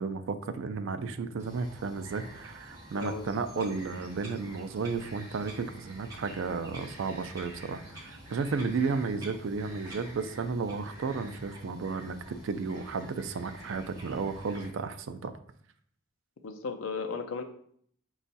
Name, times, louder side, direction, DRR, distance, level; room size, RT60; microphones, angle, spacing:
voice 1, 0.0-15.3, right 4 dB, 70° right, 10 dB, 0.4 m, -33 dB
Bird vocalization bird call bird song, 1.4-14.7, right 1 dB, 15° right, 1.0 m, -48 dB
voice 2, 2.9-3.3 3.6-3.7 16.4-17.4, left 4 dB, 80° left, 7 dB, 0.5 m, -35 dB
5.2 x 2.3 x 4.0 m, 0.63 s
head